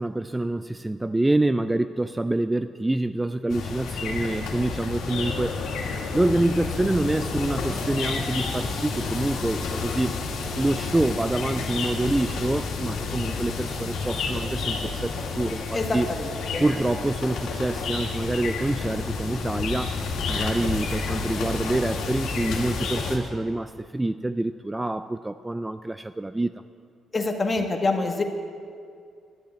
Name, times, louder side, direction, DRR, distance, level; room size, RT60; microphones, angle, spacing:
voice 1, 0.0-5.6 6.1-10.2 10.6-16.1 16.6-26.6, right 2 dB, 15° right, 12 dB, 0.3 m, -26 dB
sound 1, 3.5-23.2, left 4 dB, 80° left, 2.1 m, -30 dB
sound 2, 6.5-13.0, left 1 dB, 10° left, 1.5 m, -43 dB
voice 2, 15.7-16.6 27.1-28.2, left 3 dB, 30° left, 4 dB, 1.5 m, -26 dB
12.0 x 7.3 x 9.2 m, 2.3 s
cardioid pair, 90°, 0 cm